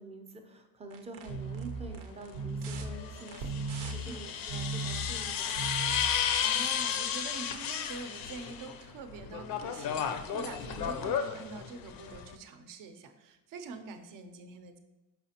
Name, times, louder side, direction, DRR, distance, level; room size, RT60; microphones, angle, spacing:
voice 1, 0.0-5.5, right 2 dB, 15° right, 4 dB, 0.5 m, -47 dB
sound 1, 0.9-6.4, right 3 dB, 90° right, 0.7 m, -37 dB
sound 2, 1.3-1.4 2.8-8.8 9.1-12.3, left 8 dB, 60° left, 0.6 m, -33 dB
voice 2, 6.0-14.8, right 4 dB, 55° right, 8 dB, 0.7 m, -45 dB
5.8 x 5.8 x 2.8 m, 1.0 s
cardioid pair, 160°, 40 cm